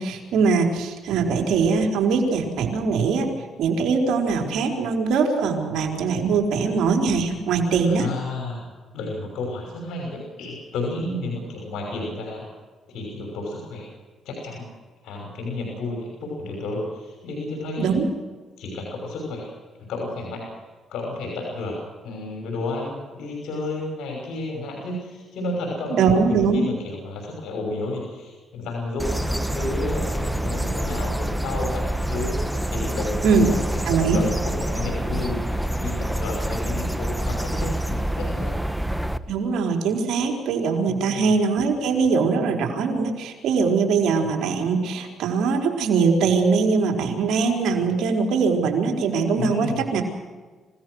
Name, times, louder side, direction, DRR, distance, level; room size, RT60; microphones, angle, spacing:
voice 1, 0.0-3.3 3.6-8.1 17.8-18.0 25.9-26.7 33.2-33.5 33.9-34.2 39.3-50.0, right 5 dB, 80° right, 2 dB, 4.5 m, -22 dB
voice 2, 7.9-8.6 8.9-12.4 12.9-13.9 14.2-14.7 15.0-17.9 18.6-19.4 19.8-20.4 20.9-21.8 22.0-32.3 32.7-33.6 33.9-38.5 40.9-41.3 49.4-49.8, left 2 dB, 80° left, 0 dB, 6.1 m, -31 dB
sound 1, 29.0-39.2, right 1 dB, ahead, 1.2 m, -26 dB
27.5 x 17.5 x 6.5 m, 1.4 s
cardioid pair, 90°, 0 cm